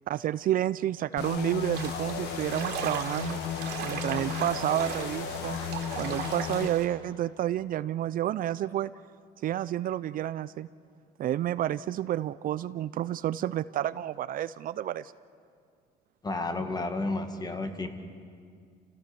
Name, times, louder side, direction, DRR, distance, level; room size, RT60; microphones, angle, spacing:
voice 1, 0.1-3.4 3.8-5.6 5.9-8.9 9.4-10.7 11.2-15.1, right 12 dB, 55° right, 16 dB, 0.5 m, -30 dB
sound 1, 1.2-6.7, left 8 dB, 90° left, 1.3 m, -35 dB
sound 2, 1.7-6.9, right 8 dB, 80° right, 2.8 m, -38 dB
voice 2, 16.2-17.9, left 2 dB, 25° left, 7 dB, 2.0 m, -31 dB
29.0 x 16.0 x 7.0 m, 2.2 s
cardioid pair, 110°, 17 cm